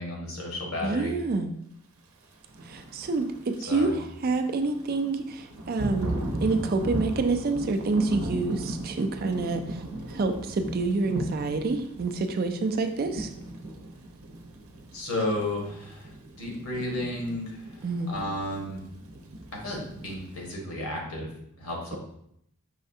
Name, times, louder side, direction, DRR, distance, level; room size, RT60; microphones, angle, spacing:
voice 1, 0.0-1.1 3.7-3.9 14.9-16.1 16.4-17.6 18.1-18.8 19.6-21.3 21.6-22.0, left 1 dB, 80° left, -1 dB, 1.5 m, -32 dB
voice 2, 0.8-1.5 2.7-9.8 10.1-13.3 17.8-18.1, right 3 dB, 45° right, 6 dB, 0.4 m, -28 dB
Thunder / Rain, 2.4-20.5, right 1 dB, 85° right, 0.7 m, -37 dB
5.6 x 3.3 x 2.7 m, 0.73 s
head